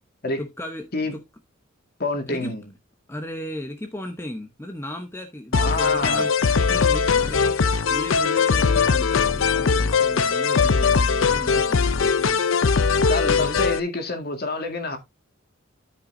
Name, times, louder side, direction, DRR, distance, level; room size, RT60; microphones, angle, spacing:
voice 1, 0.4-1.2 2.3-2.6 3.1-12.4 13.3-13.6, left 1 dB, 10° left, 0.9 m, -36 dB
voice 2, 2.0-2.6 5.6-6.3 13.1-15.0, left 2 dB, 50° left, 2.0 m, -27 dB
sound 1, 5.5-13.8, left 5 dB, 75° left, 0.6 m, -20 dB
13.0 x 5.6 x 2.7 m
head